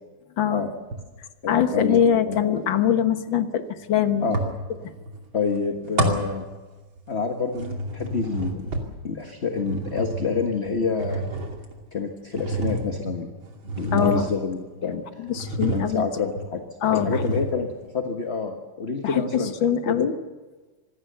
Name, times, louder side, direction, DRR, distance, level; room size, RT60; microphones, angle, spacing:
voice 1, 0.4-0.7 1.5-4.3 4.7-4.9 13.9-14.3 15.2-16.1 16.8-17.4 19.0-20.1, left 9 dB, 65° left, 9 dB, 2.0 m, -23 dB
sound 1, 0.9-1.3 4.3-5.2 5.5-7.1 7.5-14.8 15.3-16.1 16.4-16.5 16.8-17.8, right 2 dB, 70° right, 3.5 m, -30 dB
voice 2, 1.4-2.5 4.2-4.4 5.3-6.4 7.1-8.7 9.0-11.2 11.9-13.3 13.8-15.3 15.7-16.6 16.9-17.7 17.9-20.1, left 5 dB, 35° left, 4 dB, 1.6 m, -28 dB
26.0 x 19.5 x 6.9 m, 1.3 s
omnidirectional pair, 2.3 m